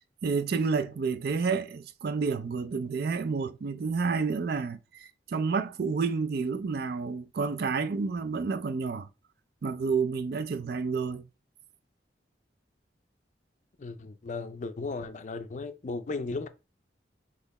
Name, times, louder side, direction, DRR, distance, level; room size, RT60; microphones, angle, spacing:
voice 1, 0.2-9.1 9.6-11.3, right 5 dB, 55° right, 0.4 m, -30 dB
voice 2, 13.8-16.5, left 3 dB, 40° left, 0.4 m, -36 dB
4.1 x 2.9 x 4.1 m
head